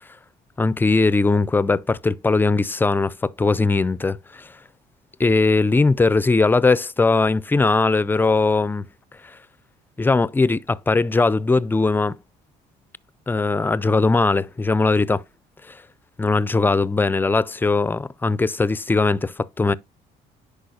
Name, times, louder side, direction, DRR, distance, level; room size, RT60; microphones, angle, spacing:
voice 1, 0.6-4.5 5.2-8.8 10.0-12.2 13.3-15.2 15.7-15.8 16.2-19.7, left 3 dB, 10° left, 0.3 m, -20 dB
10.5 x 4.8 x 2.7 m
cardioid pair, 110°, 17 cm